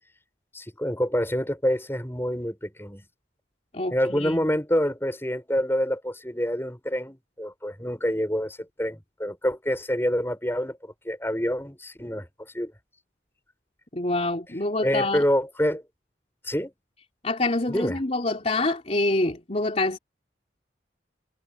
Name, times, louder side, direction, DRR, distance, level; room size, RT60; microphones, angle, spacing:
voice 1, 0.5-3.0 3.9-12.7 14.8-15.8 16.4-16.7 17.7-18.0, equal, 15° left, 7.3 m, -27 dB
voice 2, 3.7-4.5 13.9-15.2 17.2-20.0, left 2 dB, 35° left, 3.4 m, -26 dB
head